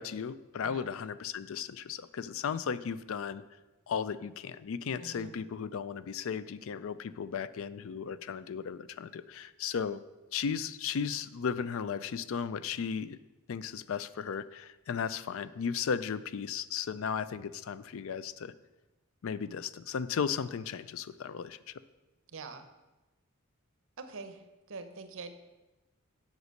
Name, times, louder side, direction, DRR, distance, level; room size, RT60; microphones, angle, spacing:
voice 1, 0.0-3.4 3.9-10.0 10.3-13.2 13.5-18.5 19.2-21.7, left 6 dB, 70° left, 15 dB, 0.4 m, -35 dB
voice 2, 5.0-5.4 22.3-22.7 24.0-25.4, right 4 dB, 65° right, 9 dB, 0.8 m, -44 dB
8.0 x 5.3 x 6.5 m, 1.1 s
head